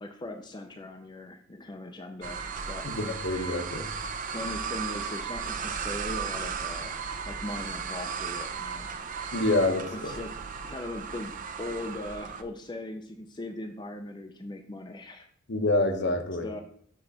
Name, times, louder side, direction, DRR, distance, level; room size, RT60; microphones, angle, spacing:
voice 1, 0.0-2.4 2.7-2.8 4.3-8.9 9.9-10.3 10.7-15.3 16.4-16.6, left 1 dB, 20° left, 4 dB, 0.5 m, -39 dB
sound 1, 2.2-12.4, right 6 dB, 40° right, 0.5 m, -35 dB
voice 2, 2.8-3.9 9.3-10.1 15.5-16.5, left 2 dB, 55° left, 6 dB, 0.9 m, -27 dB
6.1 x 3.8 x 5.7 m, 0.63 s
head